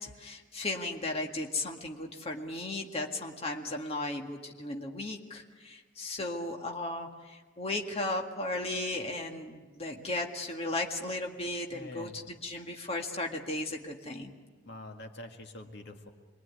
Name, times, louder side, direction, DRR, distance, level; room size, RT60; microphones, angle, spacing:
voice 1, 0.0-14.3, left 2 dB, 30° left, 1 dB, 2.0 m, -35 dB
voice 2, 11.7-12.2 14.7-16.1, left 1 dB, 60° left, 4 dB, 1.9 m, -45 dB
27.0 x 22.0 x 9.7 m, 1.4 s
head